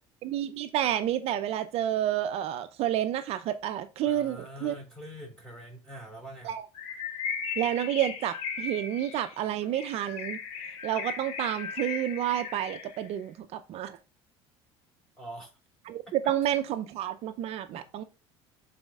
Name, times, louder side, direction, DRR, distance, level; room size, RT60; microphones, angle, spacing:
voice 1, 0.2-4.8 6.4-6.7 7.6-10.4 10.8-14.0 15.8-18.0, right 11 dB, 60° right, 0.6 m, -30 dB
voice 2, 4.0-6.5 15.2-15.5 17.7-17.9, equal, 5° left, 4.2 m, -44 dB
Bird, 6.7-13.1, left 6 dB, 80° left, 1.5 m, -37 dB
12.0 x 4.2 x 2.4 m
supercardioid pair, 95°, 12 cm